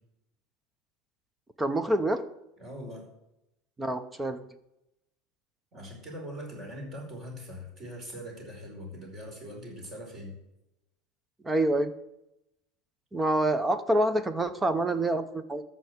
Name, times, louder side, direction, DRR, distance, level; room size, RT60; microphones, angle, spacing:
voice 1, 1.6-2.2 3.8-4.4 11.4-11.9 13.1-15.6, right 1 dB, 10° right, 12 dB, 0.8 m, -26 dB
voice 2, 2.6-3.1 5.7-10.4, equal, 30° right, 0 dB, 4.9 m, -41 dB
13.5 x 5.8 x 8.1 m, 0.88 s
supercardioid pair, 145°, 0 cm